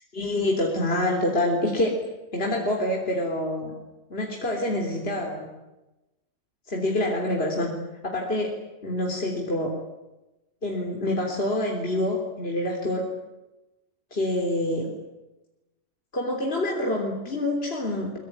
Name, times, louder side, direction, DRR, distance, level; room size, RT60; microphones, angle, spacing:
voice 1, 0.1-2.0 2.3-3.7 4.1-5.5 6.7-7.7 8.0-8.6 8.8-9.7 10.6-13.0 14.1-14.9 16.1-18.2, left 1 dB, 45° left, 0 dB, 3.7 m, -26 dB
24.0 x 22.5 x 9.9 m, 1.0 s
omnidirectional pair, 1.5 m